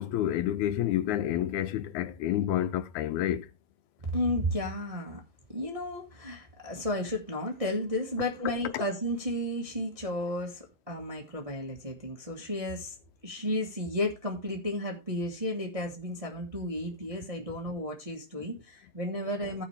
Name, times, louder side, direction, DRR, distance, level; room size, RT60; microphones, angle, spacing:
voice 1, 0.0-3.5 8.7-8.8, left 12 dB, 80° left, 2.0 m, -29 dB
voice 2, 4.0-5.2 5.5-13.0 13.2-19.6, left 1 dB, 25° right, 0.8 m, -33 dB
15.5 x 6.0 x 3.3 m
omnidirectional pair, 3.5 m